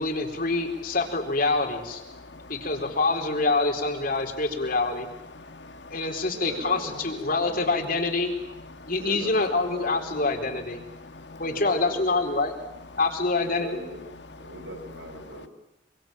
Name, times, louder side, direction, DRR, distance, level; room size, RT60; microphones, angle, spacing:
voice 1, 0.0-2.0 2.5-5.1 5.9-8.4 8.9-10.8 11.4-12.6 13.0-13.8, left 3 dB, 50° left, 4.3 m, -26 dB
voice 2, 2.1-2.7 5.3-6.0 8.7-8.9 10.9-11.4 14.4-14.5, left 2 dB, 75° left, 2.4 m, -45 dB
voice 3, 3.4-3.7 6.3-8.0 9.0-10.6 11.4-12.3 13.4-14.0 14.4-15.5, right 1 dB, 80° right, 6.1 m, -40 dB
26.0 x 24.5 x 9.2 m
head